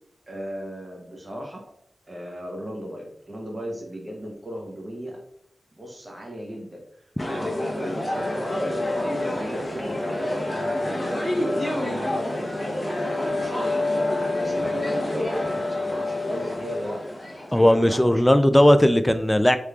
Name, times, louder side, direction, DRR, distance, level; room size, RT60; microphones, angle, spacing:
voice 1, 0.3-1.6 2.1-5.2 5.8-6.8 7.3-14.0 14.4-17.0 17.5-18.3, equal, 35° right, 0 dB, 0.8 m, -36 dB
sound 1, 7.2-17.6, left 1 dB, 35° left, 0.9 m, -27 dB
voice 2, 17.5-19.6, left 1 dB, 10° left, 10 dB, 0.3 m, -17 dB
3.5 x 3.1 x 2.3 m, 0.73 s
cardioid pair, 55°, 0 cm